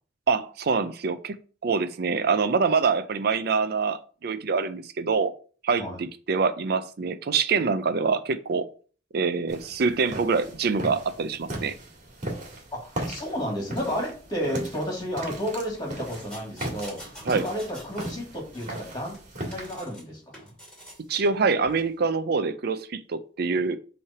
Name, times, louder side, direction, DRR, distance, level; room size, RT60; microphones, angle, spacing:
voice 1, 0.3-1.4 1.6-5.3 5.6-8.7 9.1-11.8 17.3-17.5 21.1-23.8, right 5 dB, 60° right, 0.5 m, -25 dB
sound 1, 9.5-19.8, right 1 dB, 45° right, 2.0 m, -37 dB
voice 2, 12.8-19.1 19.4-20.5, equal, 25° left, 2.5 m, -32 dB
sound 2, 16.1-18.2 18.5-20.0 20.3-21.0 21.7-21.8, equal, 5° left, 2.5 m, -45 dB
5.7 x 3.3 x 5.7 m
head